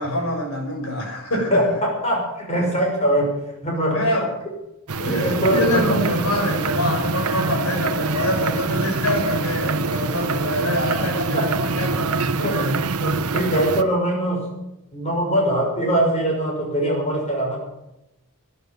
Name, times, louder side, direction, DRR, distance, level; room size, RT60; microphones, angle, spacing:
voice 1, 0.0-1.6 3.9-4.3 5.0-12.7, left 1 dB, 75° left, 1 dB, 6.0 m, -25 dB
voice 2, 1.5-3.4 3.6-4.0 5.0-5.8 11.3-11.5 12.4-12.6 13.0-14.5 14.9-17.6, right 1 dB, 30° left, -1 dB, 6.2 m, -22 dB
sound 1, 4.9-13.8, right 3 dB, 80° right, 1.0 m, -24 dB
12.0 x 11.0 x 9.2 m, 0.89 s
head